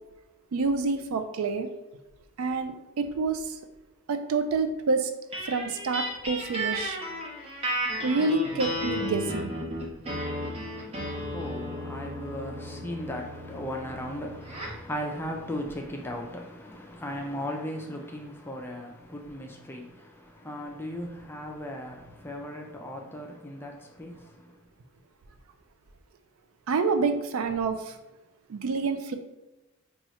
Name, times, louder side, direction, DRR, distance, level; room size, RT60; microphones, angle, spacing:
voice 1, 0.5-1.7 2.4-3.6 4.1-5.1 5.4-7.0 8.0-9.5 26.7-28.0 28.5-29.2, right 4 dB, 70° right, 0.4 m, -27 dB
sound 1, 5.3-14.9, equal, 25° right, 0.6 m, -34 dB
voice 2, 10.6-24.6, equal, 10° left, 0.4 m, -37 dB
2.9 x 2.4 x 4.1 m
head